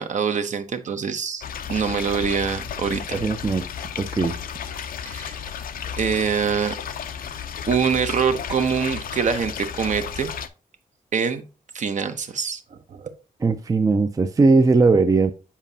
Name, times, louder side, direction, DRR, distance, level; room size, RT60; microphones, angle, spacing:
voice 1, 0.0-1.4 1.7-3.2 5.1-5.4 6.0-6.7 7.7-10.3 11.1-11.4 11.7-13.1, right 6 dB, 55° right, 0.7 m, -24 dB
sound 1, 1.4-10.5, left 8 dB, 75° left, 0.5 m, -33 dB
voice 2, 3.1-3.7 4.0-4.4 13.4-15.3, right 3 dB, 25° right, 0.4 m, -19 dB
7.3 x 4.9 x 2.7 m
wide cardioid pair, 110°, 15 cm